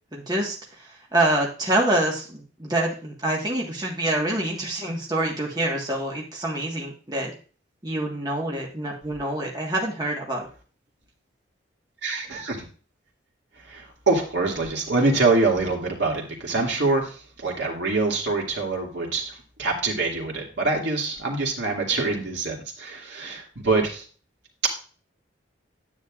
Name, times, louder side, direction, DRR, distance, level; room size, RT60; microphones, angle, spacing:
voice 1, 0.1-7.3 7.8-10.5, right 1 dB, 20° right, -2 dB, 1.5 m, -26 dB
voice 2, 12.0-12.6 13.6-24.1, right 3 dB, 70° right, -1 dB, 2.4 m, -25 dB
9.8 x 9.1 x 2.5 m, 0.38 s
head